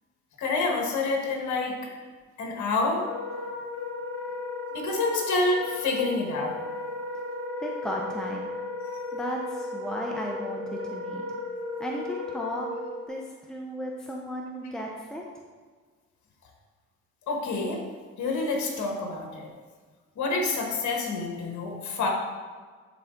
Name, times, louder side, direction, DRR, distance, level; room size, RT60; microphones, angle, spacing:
voice 1, 0.4-1.8 2.4-3.0 4.7-6.5 17.3-17.8 18.2-19.5 20.2-22.1, left 3 dB, 70° left, 0 dB, 1.7 m, -27 dB
Wind instrument woodwind instrument, 3.0-13.0, left 2 dB, 50° left, 1.4 m, -35 dB
voice 2, 7.6-8.5 9.1-11.2 11.8-12.7 13.1-13.2 13.5-15.2, equal, ahead, -1 dB, 0.9 m, -34 dB
11.5 x 4.1 x 3.9 m, 1.5 s
cardioid pair, 90°, 30 cm